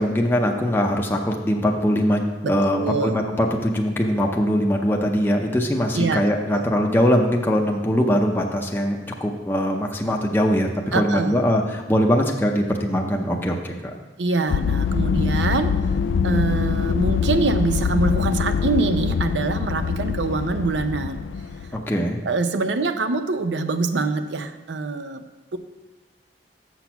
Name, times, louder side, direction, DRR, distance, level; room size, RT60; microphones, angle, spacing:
voice 1, 0.0-13.7 21.7-22.2, equal, 10° left, 0 dB, 0.6 m, -21 dB
voice 2, 2.4-3.2 5.9-6.2 6.5-6.7 10.9-11.3 14.2-15.7 16.2-21.3 22.2-25.2 25.5-25.6, right 3 dB, 85° right, 9 dB, 0.6 m, -24 dB
sound 1, 14.5-21.8, left 6 dB, 85° left, 0.3 m, -23 dB
7.1 x 6.1 x 5.8 m, 1.2 s
head